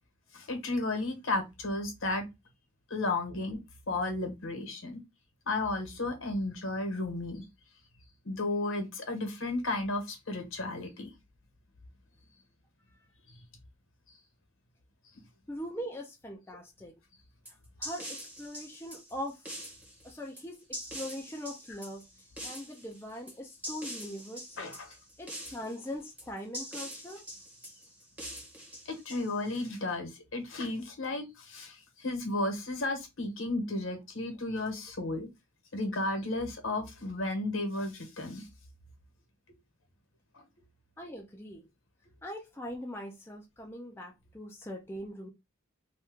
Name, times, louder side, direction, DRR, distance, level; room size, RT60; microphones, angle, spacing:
voice 1, 0.3-2.2 2.9-3.6 3.9-5.0 5.5-7.4 8.2-11.1 24.6-25.0 28.9-35.3 35.7-38.5 40.3-40.4, left 2 dB, 70° left, 1.1 m, -33 dB
voice 2, 15.5-17.0 17.8-19.4 20.0-22.0 22.4-24.8 25.2-27.2 41.0-41.7 42.2-45.3, equal, 10° left, 0.4 m, -41 dB
sound 1, 17.5-29.7, equal, 5° right, 0.9 m, -44 dB
2.8 x 2.2 x 3.5 m
head